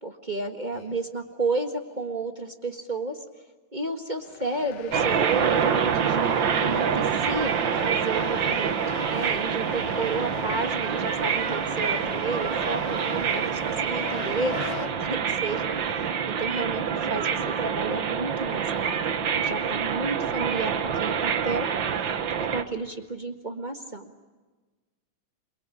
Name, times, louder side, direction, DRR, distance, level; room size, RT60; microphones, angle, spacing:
voice 1, 0.0-3.2 3.7-14.5 15.4-17.3 17.6-18.9 19.3-21.7 22.5-24.1, right 3 dB, 30° right, 4 dB, 0.8 m, -32 dB
sound 1, 4.2-14.9, left 10 dB, 80° left, 2.7 m, -40 dB
sound 2, 4.9-22.6, right 7 dB, 60° right, 1.3 m, -26 dB
voice 2, 9.8-10.7 14.5-15.2, left 2 dB, 40° left, 0 dB, 5.0 m, -43 dB
28.5 x 23.5 x 8.5 m, 1.3 s
omnidirectional pair, 3.7 m